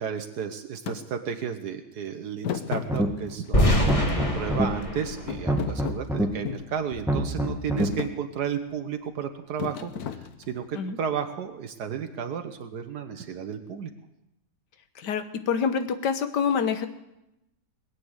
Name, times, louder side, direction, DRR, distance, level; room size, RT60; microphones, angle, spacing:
voice 1, 0.0-3.8 4.3-13.9, right 7 dB, 75° right, 7 dB, 1.5 m, -33 dB
Thump thud, 0.9-1.0 2.4-3.5 3.9-4.9 5.3-6.7 7.3-7.5 7.8-8.2 9.6-10.7, left 8 dB, 70° left, 1.4 m, -34 dB
sound 1, 2.8-3.3 3.7-4.7 5.3-6.3 6.9-7.9, right 1 dB, ahead, 1.1 m, -26 dB
sound 2, 3.5-6.5, equal, 20° left, 1.8 m, -25 dB
voice 2, 15.0-16.9, left 6 dB, 90° left, 10 dB, 1.7 m, -26 dB
21.0 x 8.5 x 8.0 m, 0.90 s
omnidirectional pair, 1.8 m